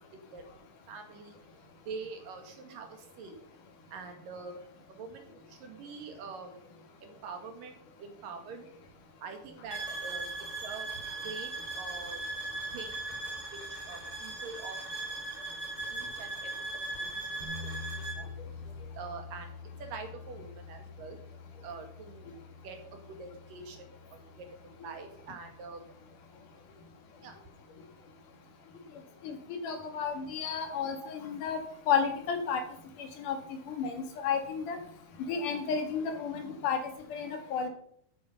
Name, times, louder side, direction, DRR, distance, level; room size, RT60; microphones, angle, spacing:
voice 1, 0.1-1.4 1.8-3.4 3.9-6.7 7.0-8.7 9.2-12.2 12.7-13.0 13.5-14.8 15.9-16.5 16.9-17.7 18.0-18.3 18.9-19.5 19.8-21.2 21.6-22.3 22.6-25.9 27.2-27.4 30.6-30.8, right 4 dB, 80° right, 5 dB, 3.7 m, -45 dB
sound 1, 9.7-18.2, right 2 dB, 25° right, 4.3 m, -38 dB
sound 2, 17.4-27.4, left 4 dB, 50° right, 4.2 m, -47 dB
voice 2, 29.6-31.6 31.9-32.6 33.0-33.4 33.7-34.8 35.3-36.8 37.1-37.7, left 6 dB, 70° left, 5 dB, 3.4 m, -32 dB
13.0 x 9.1 x 5.7 m, 0.67 s
omnidirectional pair, 3.8 m